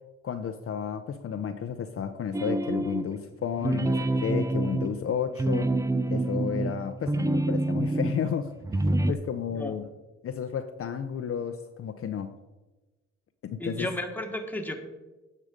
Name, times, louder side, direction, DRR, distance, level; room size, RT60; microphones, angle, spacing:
voice 1, 0.2-5.7 6.1-9.9 10.2-12.4 13.4-13.9, left 7 dB, 50° left, 7 dB, 0.6 m, -32 dB
sound 1, 2.3-3.2 3.6-8.2 8.6-9.1, right 2 dB, 10° right, 0.4 m, -27 dB
voice 2, 13.6-14.8, left 1 dB, 5° left, 3 dB, 1.5 m, -33 dB
9.7 x 6.6 x 5.1 m, 1.1 s
cardioid pair, 90°, 30 cm